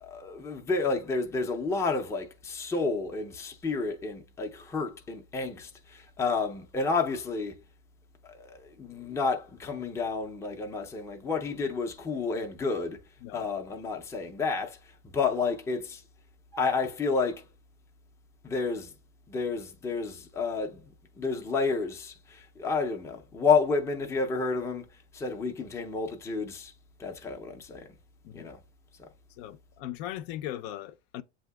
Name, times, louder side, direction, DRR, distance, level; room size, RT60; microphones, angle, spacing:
voice 1, 0.0-7.5 8.3-13.0 13.3-14.8 15.1-16.0 16.5-17.4 18.4-18.9 19.3-20.8 21.2-24.9 25.1-26.7 27.0-27.9 28.3-28.6 29.0-29.1, left 4 dB, 10° left, 0.5 m, -30 dB
voice 2, 29.4-31.2, left 12 dB, 65° left, 0.5 m, -39 dB
7.8 x 2.7 x 2.2 m
supercardioid pair, 140°, 34 cm